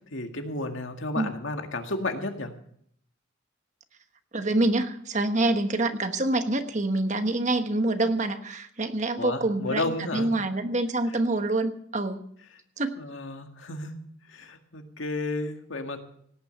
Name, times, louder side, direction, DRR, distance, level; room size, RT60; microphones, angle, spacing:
voice 1, 0.1-2.5 9.2-10.3 13.0-14.0 14.3-16.0, left 2 dB, 80° left, 5 dB, 1.9 m, -32 dB
voice 2, 4.3-12.2 12.8-13.0, right 2 dB, 40° right, 8 dB, 1.2 m, -26 dB
18.0 x 9.1 x 6.6 m, 0.66 s
head